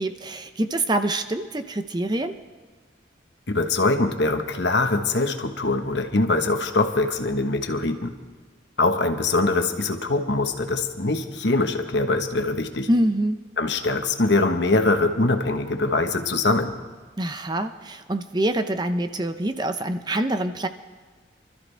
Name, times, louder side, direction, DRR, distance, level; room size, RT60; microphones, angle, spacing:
voice 1, 0.0-2.3 12.9-13.4 17.2-20.7, right 1 dB, 20° right, 9 dB, 0.6 m, -25 dB
voice 2, 3.5-8.1 8.8-12.9 13.6-16.7, left 2 dB, 65° left, 6 dB, 1.3 m, -23 dB
26.0 x 13.0 x 3.4 m, 1.4 s
head